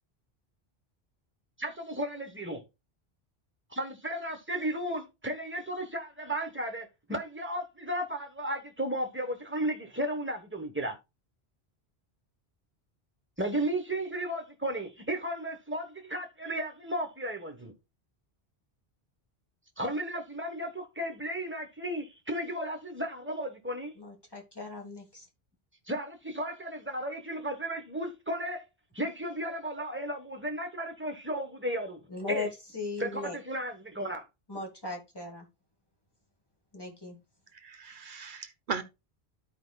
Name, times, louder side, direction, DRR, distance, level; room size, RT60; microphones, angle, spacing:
voice 1, 1.6-2.6 3.7-11.0 13.4-17.7 19.8-23.9 25.9-28.7 28.9-32.5 33.0-34.2, right 1 dB, 10° right, 1.2 m, -34 dB
voice 2, 24.0-25.3 32.1-33.4 34.5-35.5 36.7-37.2, left 3 dB, 25° left, 1.7 m, -38 dB
voice 3, 37.6-38.8, right 5 dB, 55° right, 1.0 m, -37 dB
13.5 x 4.7 x 2.3 m
omnidirectional pair, 1.1 m